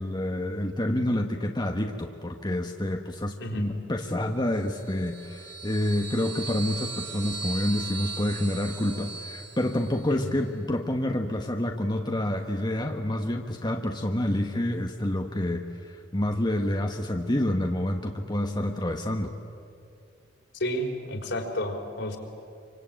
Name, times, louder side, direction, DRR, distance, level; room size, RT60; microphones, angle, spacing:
voice 1, 0.0-19.3, left 1 dB, 25° left, 4 dB, 1.1 m, -28 dB
sound 1, 4.7-10.1, right 4 dB, 65° right, 3.9 m, -38 dB
voice 2, 20.5-22.2, equal, 65° left, 2 dB, 4.0 m, -31 dB
26.5 x 25.0 x 9.0 m, 2.6 s
head